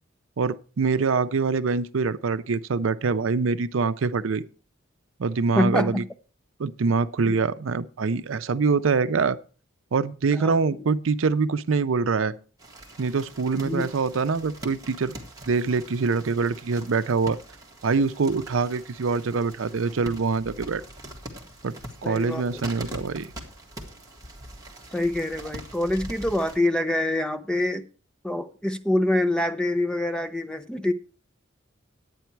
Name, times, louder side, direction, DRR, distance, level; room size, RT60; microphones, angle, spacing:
voice 1, 0.4-4.4 5.2-6.0 6.6-9.4 9.9-12.3 13.0-15.2 15.5-17.4 17.8-20.8 21.6-21.7 22.0-23.3, right 4 dB, 80° right, 0.5 m, -24 dB
voice 2, 5.6-6.1 7.2-7.4 10.3-10.8 13.5-13.9 22.0-22.7 24.9-27.8 28.2-30.9, left 1 dB, 5° left, 0.6 m, -26 dB
sound 1, 12.6-26.6, right 1 dB, 20° right, 1.8 m, -42 dB
10.5 x 9.2 x 4.5 m
head